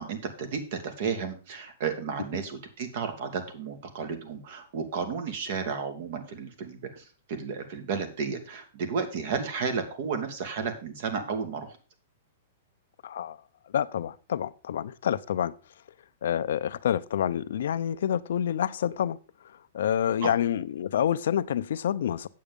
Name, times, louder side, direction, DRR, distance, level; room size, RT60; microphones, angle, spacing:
voice 1, 0.0-11.8 20.2-20.3, right 5 dB, 55° right, 2.2 m, -33 dB
voice 2, 13.0-13.4 13.7-15.5 16.2-19.2 19.7-22.3, left 9 dB, 75° left, 0.6 m, -28 dB
8.5 x 7.9 x 5.2 m
hypercardioid pair, 150°, 0 cm